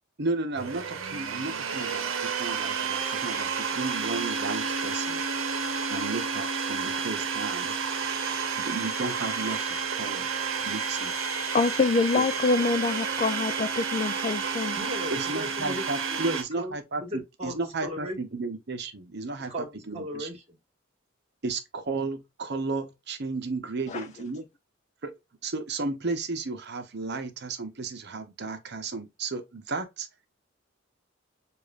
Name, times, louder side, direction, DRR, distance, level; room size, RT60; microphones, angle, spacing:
voice 1, 0.2-5.2 5.9-7.8 8.6-10.3 10.6-11.1 12.2-12.3 15.1-17.0 17.4-19.5 19.9-20.3 21.4-24.4 25.0-25.1 25.4-30.1, right 3 dB, 55° right, 0.8 m, -33 dB
Domestic sounds home sounds, 0.5-16.4, right 5 dB, 85° right, 0.9 m, -30 dB
voice 2, 11.5-14.8 23.9-24.0, left 4 dB, 35° left, 0.3 m, -25 dB
voice 3, 14.7-17.5 17.8-18.2 19.4-20.6, equal, 30° right, 1.7 m, -37 dB
6.9 x 2.5 x 2.3 m
head